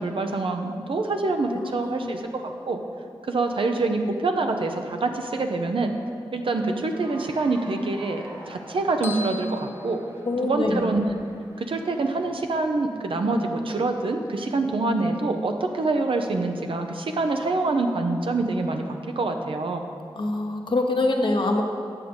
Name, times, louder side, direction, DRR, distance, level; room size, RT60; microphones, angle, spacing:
voice 1, 0.0-2.8 3.3-5.9 6.3-10.0 10.4-11.1 11.6-19.8, right 3 dB, 75° right, 5 dB, 0.7 m, -26 dB
voice 2, 1.5-2.2 10.2-10.9 20.2-21.6, left 2 dB, 65° left, 2 dB, 1.0 m, -25 dB
Cheering / Applause, 6.8-12.0, right 1 dB, 50° right, 1.9 m, -46 dB
sound 1, 9.0-10.8, left 2 dB, 25° right, 1.2 m, -39 dB
8.4 x 6.5 x 5.3 m, 2.4 s
cardioid pair, 50°, 9 cm